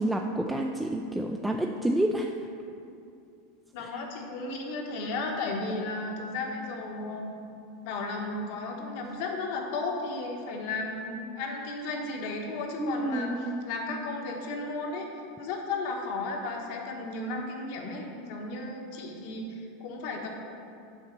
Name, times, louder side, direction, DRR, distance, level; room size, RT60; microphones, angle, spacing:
voice 1, 0.0-2.3 3.8-4.0 12.8-13.6, right 1 dB, 5° right, 2 dB, 0.3 m, -29 dB
voice 2, 3.7-7.3 7.8-13.3 13.7-15.1 15.4-20.3, left 3 dB, 60° left, 1 dB, 1.2 m, -34 dB
7.2 x 4.1 x 6.7 m, 2.5 s
supercardioid pair, 145°, 0 cm